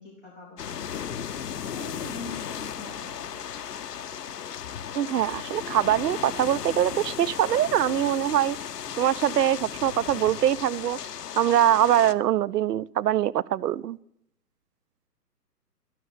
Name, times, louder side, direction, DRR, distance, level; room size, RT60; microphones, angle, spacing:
voice 1, 0.0-3.6, left 2 dB, ahead, 0.4 m, -44 dB
sound 1, 0.6-12.1, left 8 dB, 70° left, 0.8 m, -35 dB
voice 2, 4.9-8.6 9.0-11.0 11.4-14.0, right 11 dB, 75° right, 0.6 m, -23 dB
12.5 x 6.6 x 8.5 m
figure-of-eight pair, 130°, 49 cm